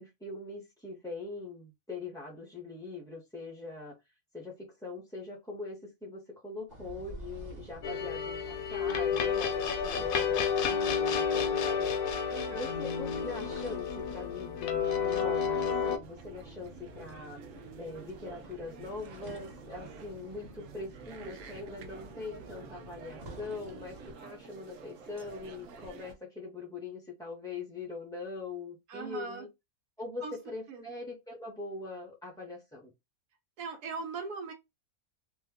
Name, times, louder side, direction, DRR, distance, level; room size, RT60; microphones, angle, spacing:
voice 1, 0.0-3.9 4.3-11.9 12.5-17.4 17.8-29.5 30.0-32.9, left 3 dB, 5° left, 0.4 m, -42 dB
sound 1, 6.7-24.1, right 1 dB, 35° right, 1.0 m, -50 dB
sound 2, 7.8-16.0, left 7 dB, 75° left, 1.0 m, -30 dB
voice 2, 12.3-12.7 28.9-29.5 30.2-30.4 30.7-30.9 33.6-34.5, right 4 dB, 85° right, 1.3 m, -39 dB
sound 3, 16.0-26.1, right 5 dB, 65° right, 1.0 m, -50 dB
2.9 x 2.3 x 3.5 m
omnidirectional pair, 1.6 m